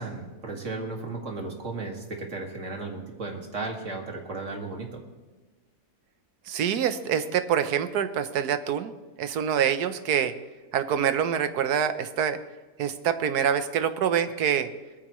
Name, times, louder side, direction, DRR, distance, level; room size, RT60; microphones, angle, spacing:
voice 1, 0.0-5.0, right 3 dB, 50° right, 1 dB, 2.3 m, -35 dB
voice 2, 6.5-8.9 9.2-10.3 10.7-12.4 12.8-14.7, right 8 dB, 75° right, 11 dB, 1.4 m, -25 dB
20.0 x 14.0 x 3.1 m, 1.3 s
omnidirectional pair, 1.7 m